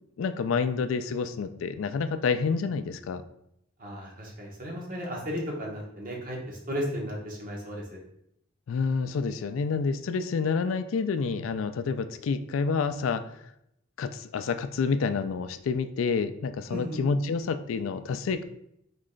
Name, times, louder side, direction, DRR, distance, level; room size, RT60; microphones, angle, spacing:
voice 1, 0.2-3.2 8.7-13.2 14.0-18.4, left 5 dB, 80° left, 11 dB, 0.4 m, -28 dB
voice 2, 3.8-8.0 16.7-17.0, equal, 45° right, -2 dB, 1.2 m, -35 dB
3.8 x 3.2 x 3.8 m, 0.76 s
head